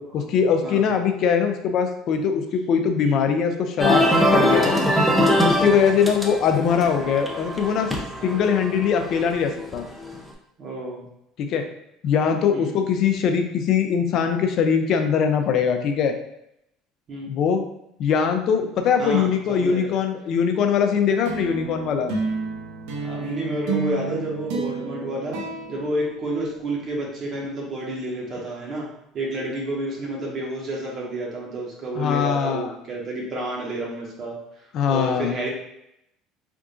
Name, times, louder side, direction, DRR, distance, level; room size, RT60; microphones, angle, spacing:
voice 1, 0.1-4.0 4.3-4.8 5.4-7.9 8.2-9.8 11.4-11.6 12.0-16.1 17.3-17.6 18.0-22.1 31.9-32.7 34.7-35.3, left 7 dB, 55° left, 6 dB, 0.5 m, -21 dB
sound 1, 3.8-10.2, equal, 5° right, 0.7 m, -22 dB
voice 2, 10.6-11.0 12.5-12.8 17.1-17.4 19.0-19.9 22.9-25.4 25.7-28.9 29.1-34.4 34.9-35.5, right 1 dB, 45° right, -3 dB, 1.4 m, -30 dB
sound 2, 21.2-26.9, right 4 dB, 80° right, 0.8 m, -31 dB
3.7 x 3.5 x 2.5 m, 0.78 s
supercardioid pair, 110°, 0 cm